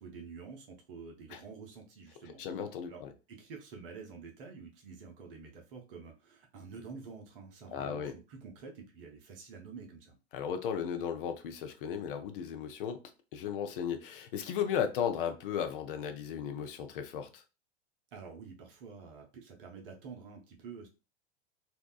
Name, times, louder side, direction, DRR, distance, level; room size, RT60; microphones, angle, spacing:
voice 1, 0.0-2.4 2.9-3.0 3.3-10.2 18.1-20.9, right 5 dB, 55° right, 0.7 m, -48 dB
voice 2, 2.4-3.1 7.7-8.1 10.3-13.0 13.3-17.4, left 8 dB, 50° left, 0.5 m, -35 dB
2.7 x 2.2 x 2.2 m
figure-of-eight pair, 90°, 34 cm